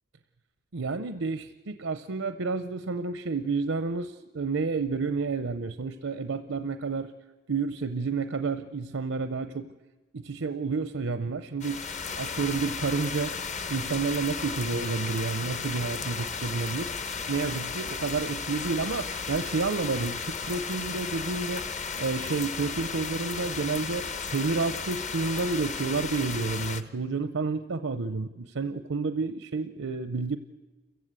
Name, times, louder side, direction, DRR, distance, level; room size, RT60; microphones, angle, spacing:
voice 1, 0.7-7.1 7.5-9.7 10.1-11.9 12.1-13.4 13.7-16.9 17.3-21.7 22.0-30.4, right 4 dB, 80° right, 11 dB, 0.7 m, -30 dB
sound 1, 11.6-26.8, left 5 dB, 35° left, 0.8 m, -34 dB
28.0 x 15.0 x 8.1 m, 1.2 s
head